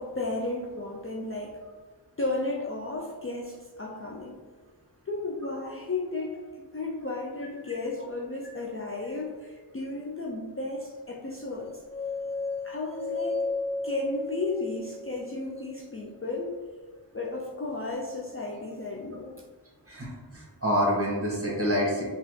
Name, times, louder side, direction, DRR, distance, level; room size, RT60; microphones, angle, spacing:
voice 1, 0.0-1.6 2.2-4.4 5.1-11.8 12.6-13.6 13.8-16.6 17.1-19.4, left 2 dB, 30° left, -2 dB, 0.4 m, -34 dB
sound 1, 11.6-15.7, left 3 dB, 75° right, 0.6 m, -34 dB
voice 2, 19.9-22.0, equal, 30° right, -4 dB, 1.5 m, -27 dB
5.3 x 2.4 x 3.2 m, 1.4 s
wide cardioid pair, 55°, 44 cm